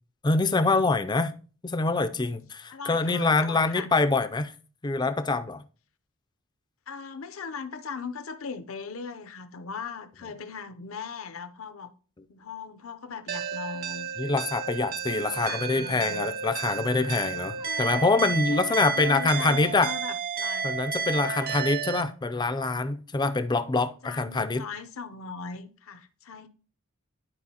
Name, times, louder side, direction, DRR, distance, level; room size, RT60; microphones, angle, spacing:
voice 1, 0.2-1.3 1.6-4.5 4.8-5.6 14.2-19.9 20.6-24.7, left 3 dB, 20° left, 0.4 m, -25 dB
voice 2, 2.7-3.9 6.9-11.9 12.3-14.1 14.9-16.3 17.6-18.1 18.5-20.7 21.2-21.6 24.0-26.5, left 5 dB, 70° left, 0.7 m, -39 dB
sound 1, 13.3-22.0, right 6 dB, 45° right, 0.5 m, -32 dB
11.5 x 4.4 x 2.9 m
head